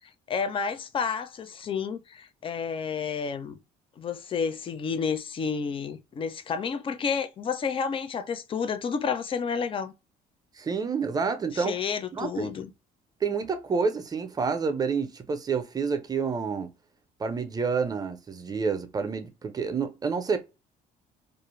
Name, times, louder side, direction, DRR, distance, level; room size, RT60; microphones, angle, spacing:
voice 1, 0.3-3.6 4.0-9.9 11.5-12.7, left 6 dB, 30° left, 0.4 m, -30 dB
voice 2, 10.6-11.8 12.1-12.5 13.2-16.7 17.2-20.4, right 5 dB, 25° right, 0.5 m, -28 dB
2.4 x 2.0 x 3.0 m
cardioid pair, 110°, 17 cm